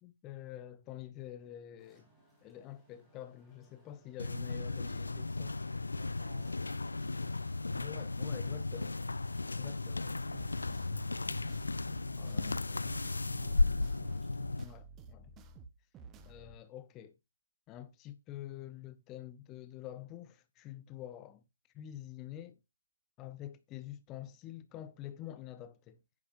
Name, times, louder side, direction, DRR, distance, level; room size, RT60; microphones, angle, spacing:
voice 1, 0.0-2.1 2.4-5.6 7.7-9.0 9.5-10.1 12.2-13.1 14.6-15.3 16.2-17.1 17.7-21.4 21.7-22.6 23.2-26.0, left 12 dB, 20° left, 0.6 m, -47 dB
sound 1, 1.8-14.7, right 1 dB, ahead, 3.4 m, -68 dB
sound 2, 4.2-14.6, left 3 dB, 80° left, 0.6 m, -35 dB
voice 2, 5.8-7.7 9.9-10.4 13.0-13.9, right 3 dB, 55° right, 5.2 m, -59 dB
sound 3, 10.3-16.6, right 4 dB, 15° right, 1.0 m, -53 dB
10.5 x 9.9 x 2.6 m
figure-of-eight pair, 145°, 0 cm